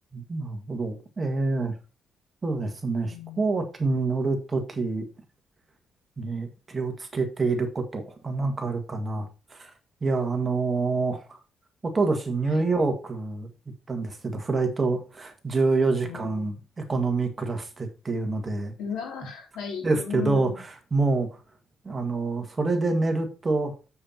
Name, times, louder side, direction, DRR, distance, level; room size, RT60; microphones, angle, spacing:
voice 1, 0.1-1.7 2.4-5.0 6.2-9.7 10.0-11.4 11.8-13.5 13.9-18.7 19.8-21.3 21.8-23.9, right 3 dB, 25° right, 5 dB, 1.7 m, -27 dB
voice 2, 3.1-3.4 12.5-12.7 16.0-16.5 18.8-20.6, left 7 dB, 85° left, 1 dB, 3.6 m, -35 dB
7.3 x 6.6 x 4.3 m, 0.32 s
cardioid pair, 125°, 0 cm